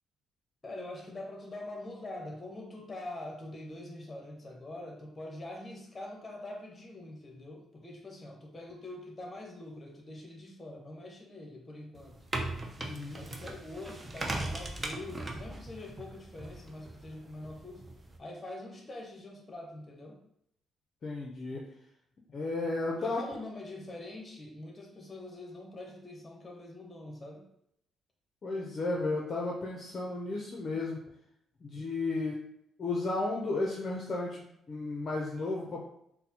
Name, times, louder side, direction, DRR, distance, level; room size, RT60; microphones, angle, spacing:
voice 1, 0.6-12.2 13.1-17.8 18.2-20.2 23.0-27.5, left 1 dB, 25° left, 1 dB, 0.9 m, -44 dB
sound 1, 12.0-18.2, right 2 dB, 25° right, 0.5 m, -39 dB
voice 2, 12.8-13.2 21.0-21.6 22.3-23.2 28.4-31.0 31.6-32.4 32.8-35.8, left 2 dB, 45° left, -2 dB, 0.5 m, -33 dB
3.9 x 2.1 x 2.8 m, 0.75 s
cardioid pair, 90°, 0 cm